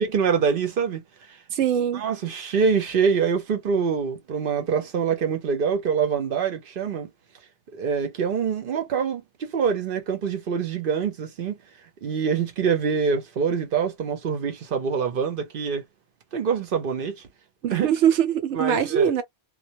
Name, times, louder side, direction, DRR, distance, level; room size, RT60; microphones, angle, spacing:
voice 1, 0.1-1.4 1.9-7.1 7.7-11.6 12.0-15.8 16.3-17.1 17.7-17.9 18.5-19.1, right 6 dB, 55° right, 0.8 m, -25 dB
voice 2, 1.5-2.0 17.6-19.2, right 9 dB, 90° right, 0.9 m, -22 dB
2.2 x 2.1 x 2.7 m
omnidirectional pair, 1.2 m